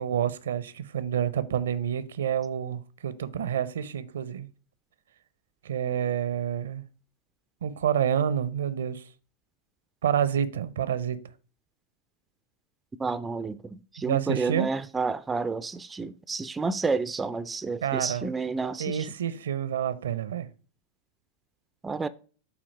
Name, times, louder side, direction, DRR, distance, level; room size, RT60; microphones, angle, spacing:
voice 1, 0.0-4.5 5.6-6.8 7.6-9.0 10.0-11.2 14.1-14.7 17.8-18.3 18.8-20.5, right 9 dB, 65° right, 0.6 m, -28 dB
voice 2, 13.0-19.1 21.8-22.1, right 4 dB, 15° right, 0.4 m, -30 dB
8.0 x 3.0 x 5.9 m
figure-of-eight pair, 90°, 0 cm